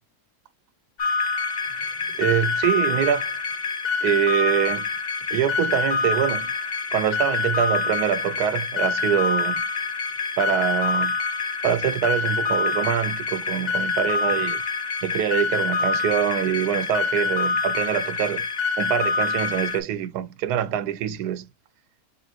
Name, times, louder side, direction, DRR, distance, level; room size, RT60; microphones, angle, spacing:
sound 1, 1.0-19.8, left 4 dB, 55° left, 0.4 m, -26 dB
voice 1, 1.7-3.3 4.0-4.8 5.3-6.5 6.9-9.6 10.4-11.2 11.6-14.6 15.0-18.4 18.8-21.5, right 10 dB, 80° right, 1.2 m, -24 dB
3.7 x 3.0 x 3.9 m
omnidirectional pair, 1.7 m